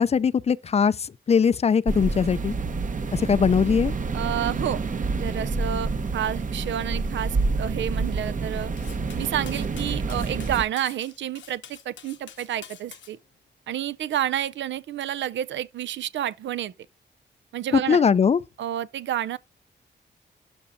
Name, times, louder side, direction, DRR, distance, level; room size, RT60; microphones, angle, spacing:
voice 1, 0.0-2.5 3.1-3.9 17.7-18.4, left 6 dB, 35° left, 0.4 m, -21 dB
sound 1, 1.9-10.6, right 3 dB, 45° right, 0.9 m, -28 dB
voice 2, 4.1-4.9 5.1-8.7 9.2-13.2 13.7-16.7 17.5-18.0 18.6-19.4, right 11 dB, 90° right, 0.5 m, -30 dB
Cutlery silverware, 8.8-13.1, left 8 dB, 90° left, 1.1 m, -46 dB
12.5 x 4.2 x 2.6 m
cardioid pair, 90°, 19 cm